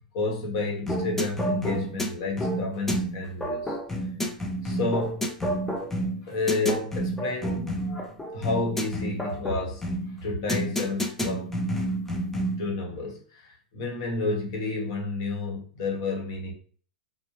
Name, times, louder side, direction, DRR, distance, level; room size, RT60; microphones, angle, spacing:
voice 1, 0.0-3.8 4.6-5.3 6.2-7.8 8.3-9.8 10.2-11.5 12.6-16.5, left 3 dB, 55° left, 0.9 m, -30 dB
sound 1, 0.9-12.7, right 1 dB, 5° left, 0.4 m, -30 dB
2.6 x 2.0 x 2.8 m
hypercardioid pair, 110°, 4 cm